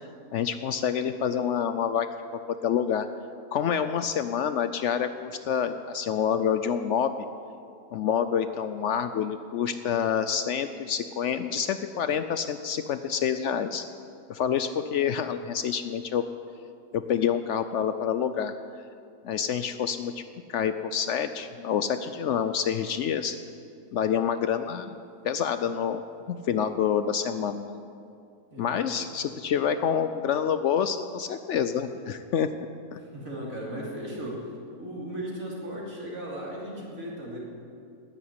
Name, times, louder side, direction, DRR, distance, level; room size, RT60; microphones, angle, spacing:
voice 1, 0.3-2.1 2.6-3.1 3.5-7.1 7.9-13.8 14.3-16.2 16.9-18.5 19.2-20.2 20.5-23.4 23.9-25.0 25.2-26.0 26.3-27.8 28.6-32.5 32.9-33.0, left 8 dB, 65° left, 10 dB, 0.8 m, -27 dB
voice 2, 28.5-28.9 33.0-34.5 34.8-37.4, right 1 dB, 70° right, -4 dB, 3.3 m, -36 dB
10.0 x 10.0 x 9.6 m, 2.4 s
omnidirectional pair, 1.5 m